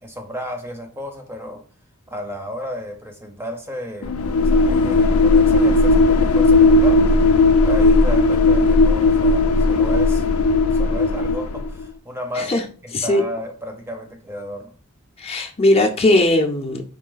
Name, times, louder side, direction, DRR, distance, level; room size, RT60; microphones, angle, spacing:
voice 1, 0.0-1.6 2.1-4.2 4.5-7.1 7.6-10.2 10.7-12.6 12.8-14.8, equal, 10° right, 5 dB, 0.6 m, -33 dB
sound 1, 4.0-11.8, left 3 dB, 80° left, 0.5 m, -16 dB
voice 2, 12.9-13.2 15.2-16.8, left 1 dB, 30° left, 2 dB, 0.6 m, -18 dB
4.8 x 2.7 x 3.9 m, 0.38 s
head